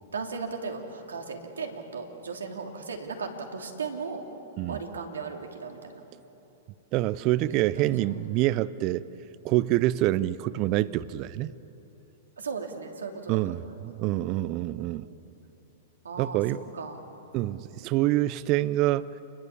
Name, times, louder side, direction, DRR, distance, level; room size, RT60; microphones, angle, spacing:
voice 1, 0.1-4.2 4.7-6.0 7.5-7.6 12.4-13.8 14.2-15.2 16.0-16.4 16.7-17.2, right 5 dB, 80° right, 3 dB, 3.0 m, -37 dB
voice 2, 6.9-9.0 9.4-11.5 13.3-15.1 16.2-16.6 17.3-19.1, right 15 dB, 40° right, 17 dB, 0.6 m, -26 dB
29.0 x 22.0 x 7.2 m, 3.0 s
figure-of-eight pair, 105°, 0 cm